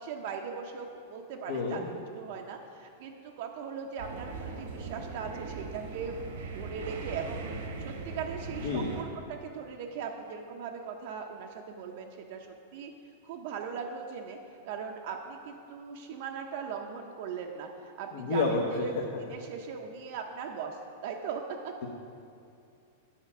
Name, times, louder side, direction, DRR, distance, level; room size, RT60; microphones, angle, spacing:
voice 1, 0.0-1.8 2.1-6.2 6.5-12.9 13.2-14.4 14.7-21.7, right 6 dB, 45° right, 2 dB, 0.6 m, -39 dB
voice 2, 1.5-1.9 8.6-8.9 18.1-18.9, left 3 dB, 65° left, -1 dB, 0.9 m, -29 dB
sound 1, 4.0-9.0, right 4 dB, 75° right, 1.0 m, -39 dB
9.1 x 4.3 x 6.0 m, 2.6 s
supercardioid pair, 170°, 0 cm